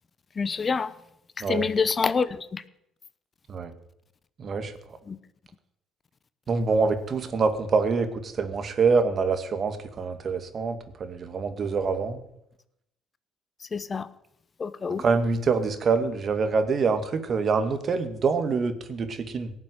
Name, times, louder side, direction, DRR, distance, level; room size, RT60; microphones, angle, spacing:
voice 1, 0.4-0.9 1.4-2.6 5.1-5.2 13.7-14.1 14.6-15.0, left 5 dB, 40° left, 14 dB, 1.1 m, -27 dB
voice 2, 4.4-4.7 6.5-12.2 15.0-19.5, right 4 dB, 50° right, 8 dB, 2.2 m, -25 dB
17.5 x 7.3 x 9.6 m, 0.82 s
hypercardioid pair, 60°, 0 cm